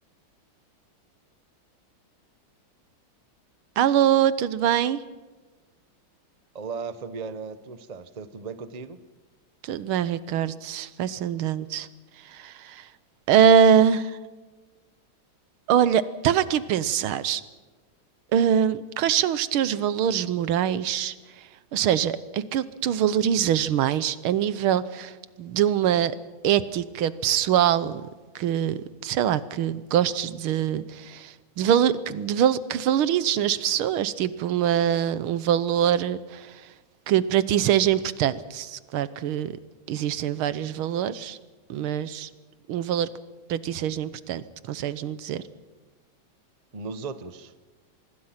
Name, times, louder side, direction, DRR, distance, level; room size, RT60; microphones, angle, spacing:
voice 1, 3.8-5.0 9.6-11.9 12.3-12.9 13.3-14.2 15.7-17.4 18.3-21.1 21.7-26.2 26.4-28.1 28.4-36.5 37.1-39.6 39.9-41.4 41.7-42.3 42.7-43.1 43.5-45.4, right 9 dB, 85° right, 15 dB, 1.8 m, -23 dB
voice 2, 6.5-9.0 46.7-47.5, right 5 dB, 35° right, 12 dB, 0.6 m, -36 dB
25.5 x 21.0 x 5.8 m, 1.3 s
omnidirectional pair, 2.3 m